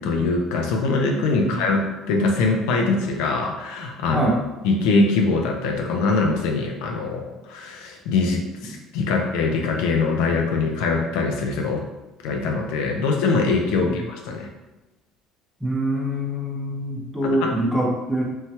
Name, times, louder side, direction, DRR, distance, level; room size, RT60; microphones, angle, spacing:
voice 1, 0.0-4.3 4.6-11.8 12.2-14.5 17.2-17.5, left 3 dB, 85° left, 2 dB, 0.5 m, -23 dB
voice 2, 15.6-18.2, right 1 dB, 5° right, -3 dB, 0.7 m, -24 dB
3.1 x 2.2 x 2.8 m, 1.1 s
cardioid pair, 130°, 0 cm